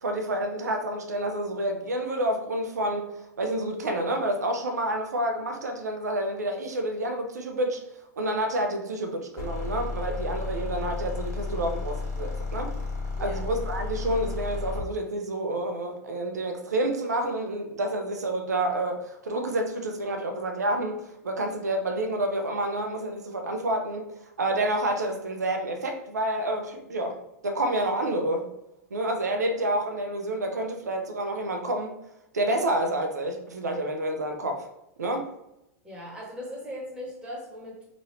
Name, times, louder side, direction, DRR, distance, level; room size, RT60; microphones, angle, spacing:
voice 1, 0.0-7.8 8.2-12.7 13.2-27.2 27.4-28.5 28.9-32.0 32.3-34.7 35.0-35.3, right 1 dB, 90° right, 4 dB, 0.6 m, -29 dB
sound 1, 9.4-14.9, left 3 dB, 35° left, 1.3 m, -32 dB
voice 2, 35.8-37.9, equal, 10° right, -5 dB, 1.4 m, -39 dB
3.0 x 2.6 x 3.1 m, 0.87 s
hypercardioid pair, 105°, 9 cm